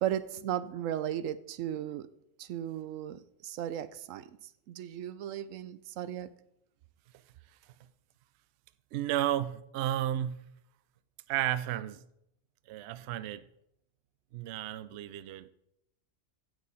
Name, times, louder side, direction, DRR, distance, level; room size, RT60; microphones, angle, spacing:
voice 1, 0.0-2.1 2.4-6.3, right 11 dB, 90° right, 1.0 m, -36 dB
voice 2, 8.9-10.4 11.3-12.0 12.7-13.5 14.3-15.5, right 12 dB, 65° right, 0.8 m, -33 dB
16.0 x 6.2 x 4.1 m
omnidirectional pair, 1.3 m